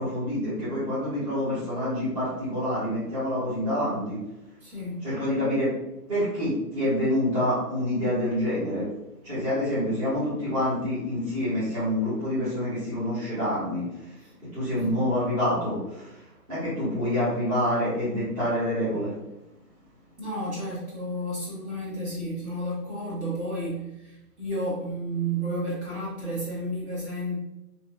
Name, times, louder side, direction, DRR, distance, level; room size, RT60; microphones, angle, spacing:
voice 1, 0.0-4.2 5.0-5.7 6.1-8.9 9.2-13.8 14.5-16.1 16.5-19.1, left 1 dB, 25° right, -13 dB, 1.2 m, -27 dB
voice 2, 4.6-5.0 14.2-14.3 14.8-15.0 20.2-27.4, right 1 dB, 45° right, -8 dB, 1.4 m, -32 dB
2.8 x 2.7 x 2.2 m, 0.93 s
hypercardioid pair, 165°, 48 cm